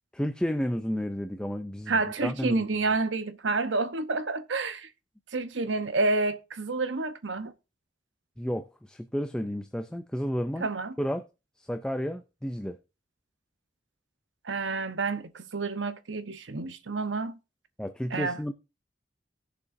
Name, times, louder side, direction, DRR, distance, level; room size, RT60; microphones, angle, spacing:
voice 1, 0.1-1.9 2.2-2.7 8.4-10.6 11.0-11.2 11.7-12.8 17.8-18.5, equal, 5° left, 0.4 m, -31 dB
voice 2, 1.9-4.9 5.3-7.5 10.6-10.9 14.4-17.4 18.1-18.4, right 3 dB, 85° right, 0.9 m, -29 dB
18.0 x 6.7 x 2.6 m
head